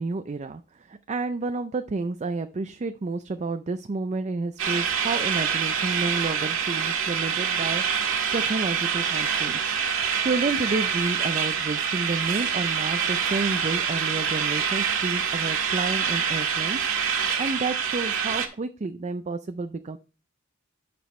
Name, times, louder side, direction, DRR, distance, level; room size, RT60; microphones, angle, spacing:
voice 1, 0.0-20.0, right 3 dB, 35° right, 9 dB, 0.4 m, -30 dB
sound 1, 4.6-18.5, right 7 dB, 80° right, 1.8 m, -26 dB
11.0 x 6.1 x 3.1 m, 0.35 s
head